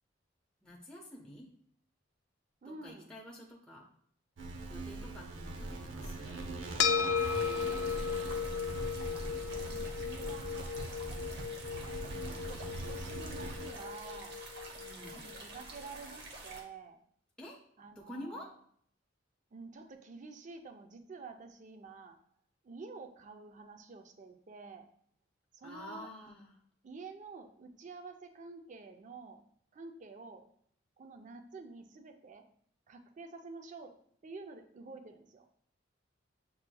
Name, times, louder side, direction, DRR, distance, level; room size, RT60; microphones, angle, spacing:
voice 1, 0.6-1.5 2.6-3.8 4.7-6.4 14.8-15.4 17.4-17.6 18.0-18.5 25.6-26.6, left 1 dB, 5° left, -4 dB, 0.6 m, -48 dB
voice 2, 2.6-3.1 7.5-8.4 9.6-11.0 12.2-14.4 15.1-17.0 17.8-18.5 19.5-22.2 22.6-24.9 25.5-26.1 26.8-29.4 29.7-30.4 31.0-32.5 32.9-33.9 34.2-35.5, right 4 dB, 40° right, 6 dB, 0.4 m, -49 dB
sound 1, 4.4-13.7, right 2 dB, 85° right, 0.6 m, -42 dB
sound 2, 6.8-15.4, left 7 dB, 65° left, 0.3 m, -36 dB
sound 3, 7.1-16.6, right 2 dB, 60° right, 0.9 m, -48 dB
7.3 x 3.0 x 2.2 m, 0.63 s
head